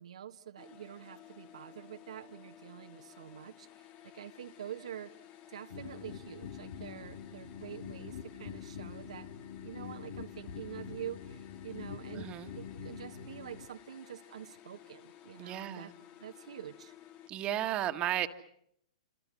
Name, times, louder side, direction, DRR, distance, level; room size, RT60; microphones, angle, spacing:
voice 1, 0.0-5.1 5.5-9.3 9.6-15.9 16.2-16.9, right 10 dB, 70° right, 5 dB, 1.4 m, -46 dB
sound 1, 0.6-17.3, left 11 dB, 35° left, 1.9 m, -55 dB
sound 2, 5.7-13.6, left 7 dB, 65° left, 2.2 m, -45 dB
voice 2, 12.1-12.5 15.4-15.9 17.3-18.3, right 12 dB, 30° right, 7 dB, 1.9 m, -34 dB
29.0 x 26.5 x 6.1 m, 0.70 s
hypercardioid pair, 120°, 4 cm